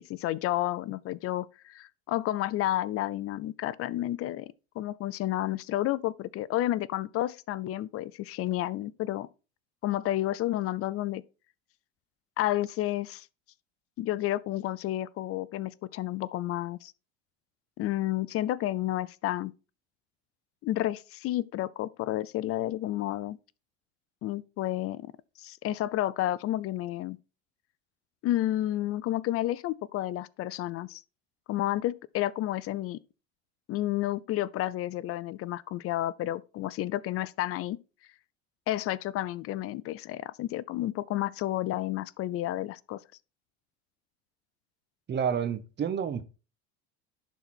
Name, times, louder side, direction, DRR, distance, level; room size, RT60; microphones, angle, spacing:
voice 1, 0.0-9.3 9.8-11.2 12.4-13.3 14.0-16.9 17.8-19.5 20.6-23.4 24.2-25.1 25.4-27.2 28.2-31.0 31.5-33.0 33.7-37.8 38.7-43.0, left 14 dB, 40° left, 0.5 m, -31 dB
voice 2, 45.1-46.2, right 7 dB, 30° right, 1.1 m, -29 dB
11.0 x 4.1 x 4.4 m
supercardioid pair, 100°, 34 cm